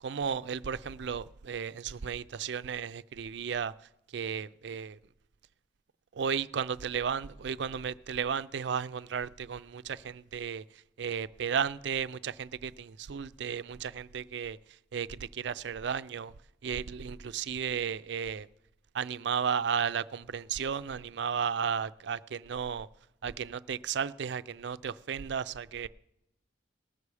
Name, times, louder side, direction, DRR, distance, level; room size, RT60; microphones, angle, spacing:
voice 1, 0.0-3.7 4.1-5.0 6.1-10.6 11.0-14.6 14.9-16.3 16.6-18.5 18.9-22.9 23.2-25.9, right 7 dB, 65° right, 0.4 m, -34 dB
19.5 x 6.9 x 4.8 m
head